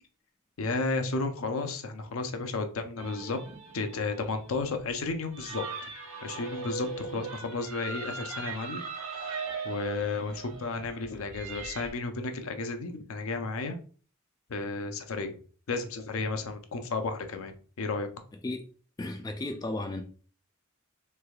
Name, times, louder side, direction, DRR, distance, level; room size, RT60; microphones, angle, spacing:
voice 1, 0.6-3.4 3.7-5.6 6.2-13.8 14.5-15.4 15.7-18.1, left 3 dB, 75° left, 7 dB, 0.5 m, -33 dB
sound 1, 3.0-11.9, right 4 dB, 70° right, 1.0 m, -40 dB
voice 2, 19.0-20.0, left 2 dB, 20° left, 5 dB, 0.3 m, -34 dB
3.2 x 3.2 x 2.3 m, 0.40 s
head